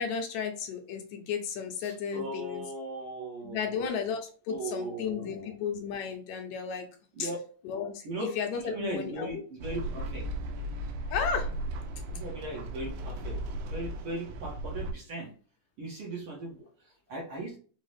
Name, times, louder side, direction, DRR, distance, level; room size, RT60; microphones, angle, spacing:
voice 1, 0.0-2.6 3.4-6.9 7.2-7.3 7.7-8.1 8.4-9.3 11.1-11.5, left 6 dB, 75° left, 4 dB, 1.9 m, -33 dB
voice 2, 1.8-4.1 4.5-5.6 7.1-7.4 8.0-8.3 8.6-10.2 12.1-13.4 13.7-15.3 15.8-17.6, right 2 dB, 55° right, -3 dB, 1.7 m, -38 dB
sound 1, 9.6-14.9, right 1 dB, 80° right, 2.0 m, -36 dB
5.4 x 2.4 x 3.2 m, 0.41 s
omnidirectional pair, 3.4 m